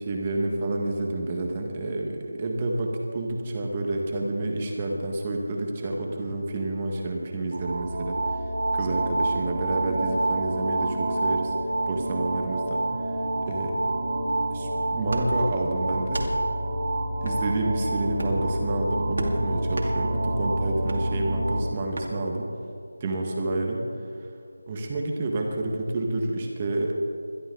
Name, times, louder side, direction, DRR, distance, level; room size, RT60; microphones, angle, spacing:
voice 1, 0.1-8.4 8.7-11.5 11.9-13.2 13.5-13.8 14.5-16.2 17.2-22.5 23.0-23.8 24.7-26.9, right 2 dB, 25° right, 1 dB, 1.6 m, -29 dB
sound 1, 7.5-21.6, right 1 dB, 45° right, 2.6 m, -27 dB
sound 2, 15.1-15.3 16.0-16.3 17.2-17.4 18.1-18.4 19.1-19.3 19.7-19.9 20.8-21.0 21.9-22.1, right 1 dB, 65° right, 2.5 m, -33 dB
21.5 x 12.5 x 3.9 m, 2.5 s
figure-of-eight pair, 165°, 0 cm